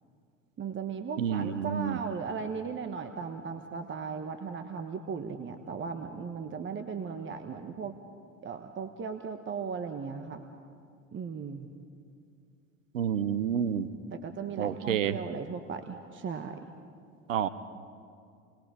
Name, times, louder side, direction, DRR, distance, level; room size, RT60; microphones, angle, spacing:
voice 1, 0.6-8.0 8.4-10.4 11.1-11.7 14.1-16.7, right 6 dB, 30° right, 7 dB, 1.3 m, -37 dB
voice 2, 1.2-2.0 12.9-13.9 14.6-15.2 17.3-17.5, right 9 dB, 85° right, 14 dB, 0.9 m, -29 dB
28.5 x 20.5 x 5.1 m, 2.3 s
hypercardioid pair, 80°, 37 cm